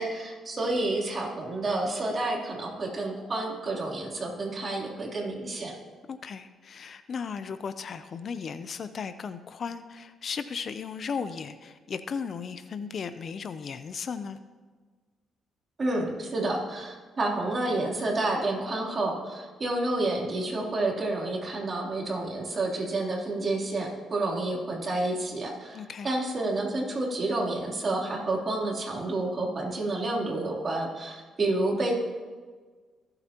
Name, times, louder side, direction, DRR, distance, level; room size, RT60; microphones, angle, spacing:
voice 1, 0.0-5.7 15.8-31.9, right 2 dB, 35° right, -3 dB, 3.2 m, -29 dB
voice 2, 6.1-14.4 25.7-26.1, left 6 dB, 50° left, 11 dB, 0.6 m, -36 dB
23.0 x 7.9 x 2.9 m, 1.5 s
cardioid pair, 90°, 0 cm